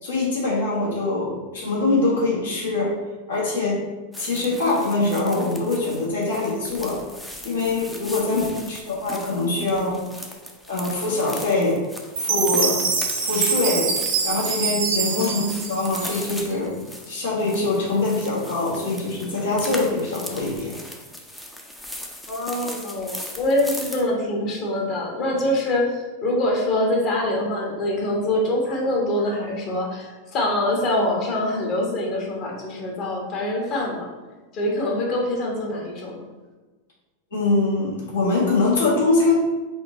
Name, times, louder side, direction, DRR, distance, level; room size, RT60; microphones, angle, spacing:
voice 1, 0.0-2.9 3.3-3.8 4.2-7.0 7.4-10.0 10.7-11.8 12.2-12.8 13.2-13.9 14.2-16.7 17.1-20.8 37.3-39.3, left 3 dB, 65° left, -5 dB, 1.4 m, -23 dB
sound 1, 4.1-24.0, left 1 dB, 5° left, 0.6 m, -38 dB
voice 2, 8.1-8.5 15.1-15.3 22.3-34.1 34.5-36.2, left 1 dB, 35° left, -1 dB, 1.2 m, -24 dB
Chime, 12.2-16.5, right 5 dB, 50° right, 0.8 m, -25 dB
4.2 x 2.8 x 4.0 m, 1.3 s
figure-of-eight pair, 90°, 0 cm